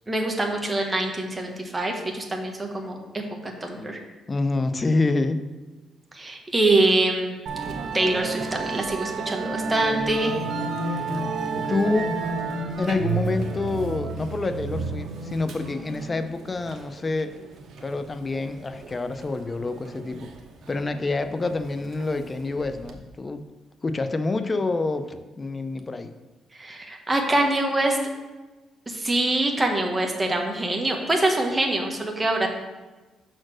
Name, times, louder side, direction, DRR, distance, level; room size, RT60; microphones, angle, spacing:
voice 1, 0.1-4.0 6.1-7.4 7.9-10.3 26.5-28.0 28.9-32.5, right 2 dB, 20° right, 2 dB, 1.2 m, -24 dB
voice 2, 4.3-5.4 10.8-11.1 11.7-12.1 12.8-17.3 17.8-20.3 20.7-23.4 23.8-26.1, left 3 dB, 30° left, 9 dB, 0.6 m, -27 dB
Musical instrument, 7.5-23.0, right 3 dB, 70° right, 0.9 m, -32 dB
5.9 x 4.4 x 6.2 m, 1.2 s
cardioid pair, 90°, 0 cm